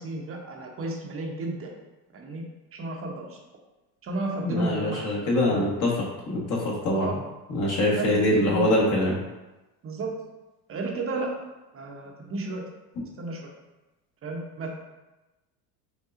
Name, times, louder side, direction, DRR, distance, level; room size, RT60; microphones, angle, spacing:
voice 1, 0.0-1.7 2.1-2.4 2.7-3.4 4.0-5.6 6.9-7.2 7.9-8.7 9.8-10.1 10.7-11.3 11.7-12.6 13.2-13.5 14.2-14.8, right 2 dB, 25° right, 0 dB, 0.8 m, -33 dB
voice 2, 4.4-7.1 7.5-9.2, left 1 dB, 40° left, -3 dB, 1.3 m, -24 dB
5.6 x 2.3 x 2.5 m, 1.1 s
hypercardioid pair, 95°, 49 cm